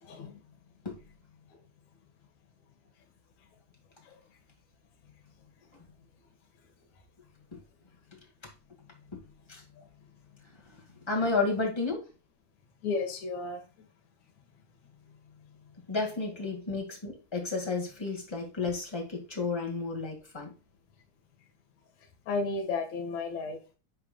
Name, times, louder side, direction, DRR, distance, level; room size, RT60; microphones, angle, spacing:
voice 1, 0.0-0.4 4.1-4.2 9.8-9.9 12.8-13.6 22.3-23.7, left 3 dB, 70° left, 2.9 m, -33 dB
voice 2, 8.1-8.5 9.1-9.2 9.5-9.6 10.6-10.8 11.0-12.1 15.9-20.5, left 3 dB, 10° left, 1.5 m, -32 dB
9.9 x 4.7 x 2.3 m
omnidirectional pair, 3.4 m